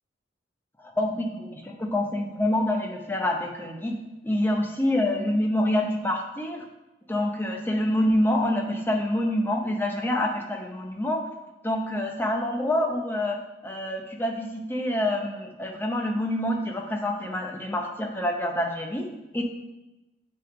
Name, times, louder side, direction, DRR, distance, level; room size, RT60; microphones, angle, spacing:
voice 1, 0.8-4.0 4.2-6.6 7.1-11.2 11.6-13.4 13.6-19.1 19.3-19.4, left 1 dB, 10° left, 1 dB, 0.7 m, -26 dB
7.3 x 3.7 x 4.8 m, 1.0 s
head